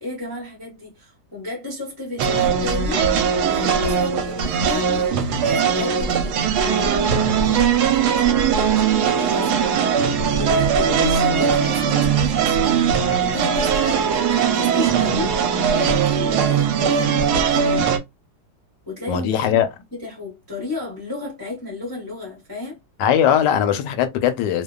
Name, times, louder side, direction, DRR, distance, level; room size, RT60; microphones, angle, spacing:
voice 1, 0.0-12.9 13.2-17.9 18.9-22.8, left 3 dB, 20° left, 0.6 m, -33 dB
sound 1, 2.2-18.0, right 7 dB, 70° right, 1.0 m, -20 dB
voice 2, 19.1-19.7 23.0-24.6, left 9 dB, 75° left, 1.2 m, -19 dB
2.8 x 2.2 x 2.2 m
omnidirectional pair, 2.0 m